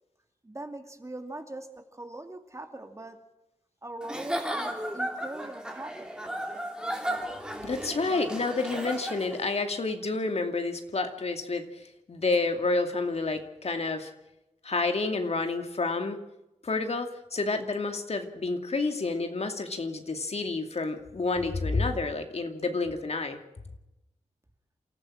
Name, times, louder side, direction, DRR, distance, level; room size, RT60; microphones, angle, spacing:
voice 1, 0.4-3.2 3.8-6.3 7.6-7.7, right 2 dB, 25° right, 5 dB, 2.5 m, -41 dB
Giggle / Chuckle chortle, 4.0-9.5, right 1 dB, 5° right, 3.3 m, -34 dB
voice 2, 7.6-14.1 14.6-16.2 16.6-23.4, left 3 dB, 55° left, 5 dB, 2.5 m, -29 dB
28.0 x 14.5 x 6.4 m, 0.90 s
wide cardioid pair, 80°, 13 cm